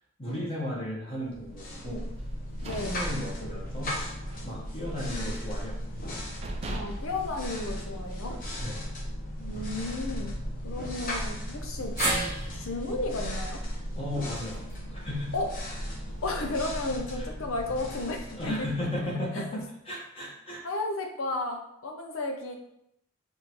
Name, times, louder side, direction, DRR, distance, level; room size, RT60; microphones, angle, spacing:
voice 1, 0.2-2.0 2.8-3.9 4.4-5.8 8.6-8.8 13.9-14.6 14.9-15.3 17.1-17.3 18.0-18.1 18.3-20.6, left 1 dB, 25° left, -5 dB, 1.2 m, -34 dB
sound 1, 1.3-19.1, equal, 40° left, 0.9 m, -36 dB
sound 2, 2.3-3.9 4.2-4.5 4.8-5.6 6.0-6.1 6.4-8.2, right 1 dB, 30° right, 0.3 m, -39 dB
voice 2, 2.6-3.0 6.7-8.3 9.4-10.4 10.6-11.9 12.5-13.6 15.3-15.5 16.2-18.7 19.3-19.4 20.6-22.6, left 2 dB, 85° left, 3 dB, 0.7 m, -33 dB
sound 3, 12.0-16.2 16.6-16.7 17.8-17.9, right 2 dB, 10° right, 0.9 m, -36 dB
5.2 x 2.6 x 3.0 m, 0.77 s
head